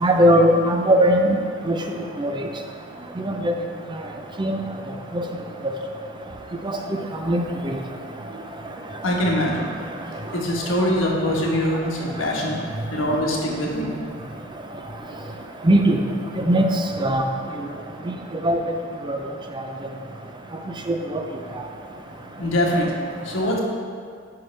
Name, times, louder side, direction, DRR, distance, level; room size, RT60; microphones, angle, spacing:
voice 1, 0.0-1.4 1.7-1.8 2.2-2.3 3.3-3.5 4.4-4.6 5.1-5.2 7.3-7.8 15.6-16.0 16.4-16.7 17.0-17.2 18.4-18.6 19.1-19.2 20.9-21.0, right 1 dB, 25° right, 3 dB, 0.5 m, -18 dB
voice 2, 9.0-9.7 10.3-12.6 12.9-13.9 22.4-23.6, left 1 dB, 75° left, -2 dB, 1.3 m, -23 dB
10.0 x 5.7 x 3.3 m, 2.2 s
head